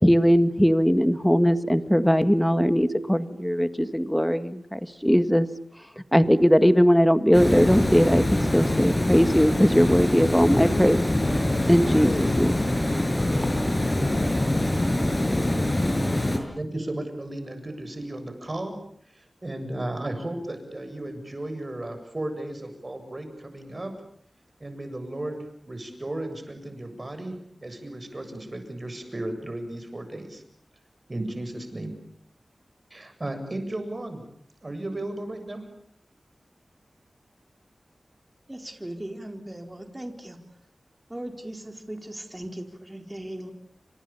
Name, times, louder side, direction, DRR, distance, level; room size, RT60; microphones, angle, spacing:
voice 1, 0.0-5.5 6.1-8.3 8.5-11.0 11.6-12.5, equal, 5° left, 11 dB, 1.8 m, -20 dB
Water, 7.3-16.4, left 1 dB, 25° left, 6.5 m, -24 dB
voice 2, 16.4-18.8 19.1-23.9 24.6-30.4 31.1-31.9 32.9-34.2 34.6-35.6, right 1 dB, 35° right, 8 dB, 7.6 m, -34 dB
voice 3, 38.5-40.4 41.1-43.5, right 1 dB, 20° right, 5 dB, 4.3 m, -38 dB
30.0 x 26.0 x 7.2 m, 0.66 s
wide cardioid pair, 55°, 0 cm